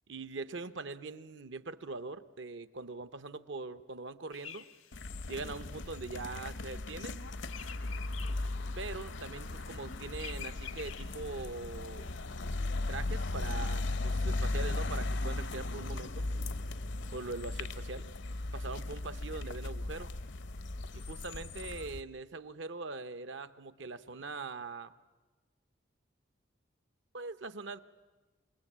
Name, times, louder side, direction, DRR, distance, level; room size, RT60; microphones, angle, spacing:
voice 1, 0.1-4.7 5.3-7.2 8.8-12.1 12.9-16.3 17.1-18.1 18.5-20.1 20.9-24.9 27.1-27.8, right 3 dB, 65° right, 13 dB, 0.8 m, -42 dB
sound 1, 4.3-12.2, left 9 dB, 90° left, 1.3 m, -51 dB
sound 2, 4.9-22.0, left 2 dB, 60° left, 0.7 m, -37 dB
27.5 x 19.5 x 7.4 m, 1.3 s
head